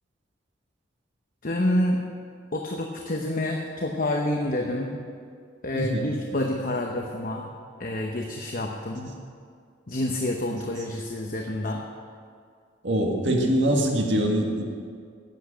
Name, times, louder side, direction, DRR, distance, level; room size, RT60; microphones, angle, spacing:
voice 1, 1.4-2.0 2.5-5.0 5.6-7.5 7.8-9.2 9.9-11.8, left 1 dB, 45° left, 1 dB, 1.0 m, -28 dB
voice 2, 5.7-6.1 12.8-14.6, right 1 dB, 70° right, 0 dB, 2.0 m, -23 dB
11.0 x 8.2 x 8.9 m, 2.2 s
head